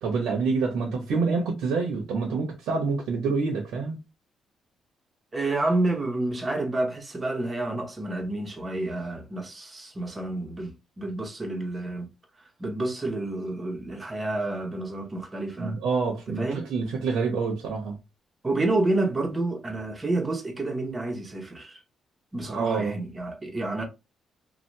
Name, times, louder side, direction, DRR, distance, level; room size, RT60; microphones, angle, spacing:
voice 1, 0.0-4.0 15.6-18.0 22.5-23.0, right 4 dB, 85° right, 0.9 m, -27 dB
voice 2, 5.3-12.1 12.6-15.8 16.3-16.7 18.4-21.8 22.3-23.8, right 2 dB, 25° right, 0.9 m, -29 dB
2.8 x 2.3 x 3.3 m
cardioid pair, 90°, 0 cm